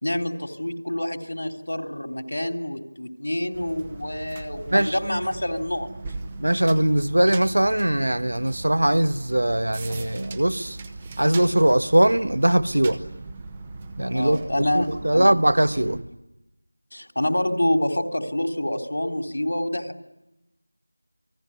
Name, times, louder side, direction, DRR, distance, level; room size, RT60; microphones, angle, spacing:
voice 1, 0.0-5.9 14.1-15.3 15.8-16.0 16.9-19.9, left 1 dB, 75° left, 3.4 m, -27 dB
sound 1, 3.5-16.0, right 3 dB, 10° right, 0.9 m, -39 dB
voice 2, 6.4-10.8 11.2-13.0 14.0-16.0, right 1 dB, 75° right, 1.3 m, -21 dB
29.0 x 19.5 x 9.7 m
figure-of-eight pair, 180°, 0 cm